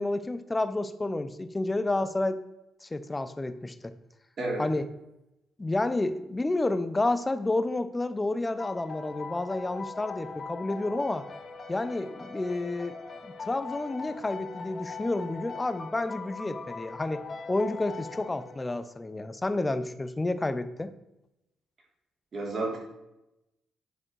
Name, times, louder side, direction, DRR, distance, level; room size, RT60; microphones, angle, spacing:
voice 1, 0.0-2.4 2.8-3.9 4.6-4.9 5.6-11.2 11.7-12.9 13.2-17.2 17.5-20.9, left 2 dB, 20° left, 11 dB, 0.7 m, -30 dB
sound 1, 8.6-19.0, left 4 dB, 35° left, 2.2 m, -41 dB
voice 2, 22.3-22.8, right 2 dB, 45° right, -2 dB, 3.5 m, -30 dB
9.8 x 5.2 x 4.7 m, 0.90 s
cardioid pair, 90°, 0 cm